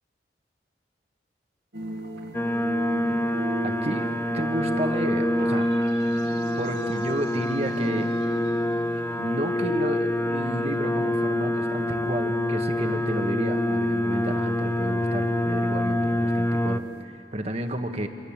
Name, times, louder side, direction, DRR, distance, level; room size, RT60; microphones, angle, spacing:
sound 1, 1.7-17.0, right 1 dB, 75° right, 2.3 m, -38 dB
sound 2, 2.3-16.8, left 1 dB, 10° left, 0.6 m, -26 dB
voice 1, 3.6-4.1 4.3-5.7 6.6-8.1 9.2-18.1, right 1 dB, 35° right, 6 dB, 1.6 m, -31 dB
28.5 x 25.5 x 7.4 m, 2.8 s
head